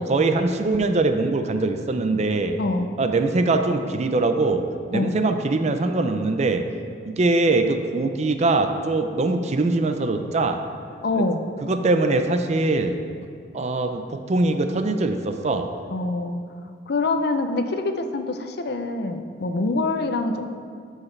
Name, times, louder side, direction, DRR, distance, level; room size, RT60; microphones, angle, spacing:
voice 1, 0.0-2.5 3.0-4.6 4.9-6.6 7.0-10.6 11.2-11.3 11.6-12.9 13.5-15.7, right 2 dB, 40° right, 7 dB, 0.5 m, -22 dB
voice 2, 11.0-11.5 15.9-16.4 16.9-20.5, left 2 dB, 60° left, 7 dB, 0.5 m, -25 dB
12.5 x 4.8 x 3.2 m, 2.2 s
head